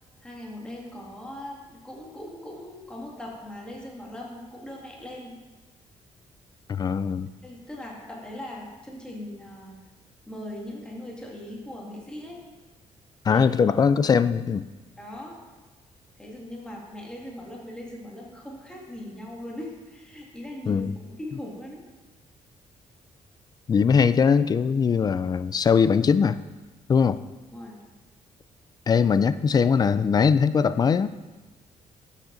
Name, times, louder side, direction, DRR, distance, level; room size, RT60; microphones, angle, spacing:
voice 1, 0.2-5.4 7.4-9.8 10.3-12.4 13.3-13.5 15.0-15.4 16.2-21.8 27.5-27.8, left 1 dB, 5° left, -3 dB, 2.1 m, -40 dB
voice 2, 6.7-7.3 13.2-14.6 20.7-21.0 23.7-26.4 26.9-27.2 28.9-31.1, left 6 dB, 35° left, 15 dB, 0.4 m, -21 dB
12.5 x 7.2 x 3.9 m, 1.2 s
cardioid pair, 120°, 12 cm